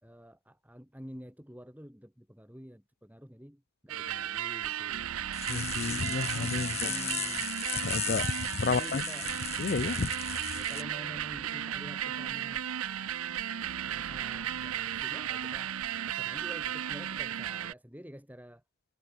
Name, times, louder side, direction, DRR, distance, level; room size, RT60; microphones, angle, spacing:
voice 1, 0.0-5.1 6.6-7.5 8.6-9.3 10.5-12.7 13.9-15.8 16.1-18.6, equal, 5° right, 3.2 m, -48 dB
sound 1, 3.9-17.7, right 10 dB, 75° right, 0.6 m, -35 dB
sound 2, 5.3-10.8, left 11 dB, 30° left, 0.8 m, -37 dB
voice 2, 5.5-6.9 7.8-9.0 9.6-10.1, left 4 dB, 45° left, 0.4 m, -31 dB
head